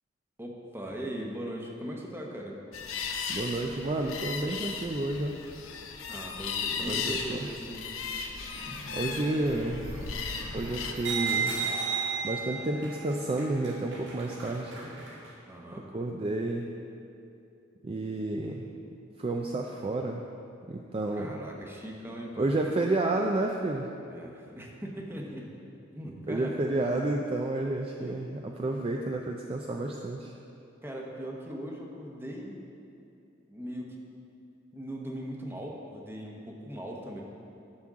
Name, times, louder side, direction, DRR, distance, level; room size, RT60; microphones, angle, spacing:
voice 1, 0.4-2.6 6.1-7.9 15.4-15.9 21.1-22.5 24.1-25.5 25.9-26.6 28.0-28.2 30.8-32.6 33.5-34.0 34.7-37.2, equal, 10° right, -1 dB, 0.9 m, -39 dB
sound 1, 2.7-10.9, left 5 dB, 90° left, 0.7 m, -36 dB
voice 2, 3.3-5.4 6.8-7.5 8.9-9.9 10.5-11.5 12.2-14.7 15.9-16.7 17.8-18.7 19.2-20.2 20.7-21.3 22.4-23.9 26.3-30.3, right 2 dB, 30° right, 1 dB, 0.4 m, -30 dB
sound 2, 8.3-15.3, right 4 dB, 65° right, 1.6 m, -35 dB
11.5 x 6.1 x 3.6 m, 2.7 s
head